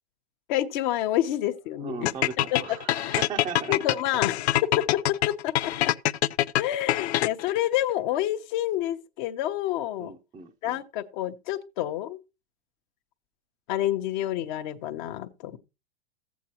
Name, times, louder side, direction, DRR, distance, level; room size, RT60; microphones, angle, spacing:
voice 1, 0.5-2.1 2.5-2.6 3.7-4.4 4.7-4.8 5.3-5.9 6.6-10.1 10.6-12.2 13.7-15.6, left 13 dB, 45° left, 1.0 m, -28 dB
voice 2, 1.8-3.8 10.0-10.8, right 6 dB, 15° right, 0.6 m, -37 dB
sound 1, 2.1-7.6, left 14 dB, 75° left, 0.5 m, -25 dB
14.5 x 8.3 x 2.9 m
hypercardioid pair, 135°, 33 cm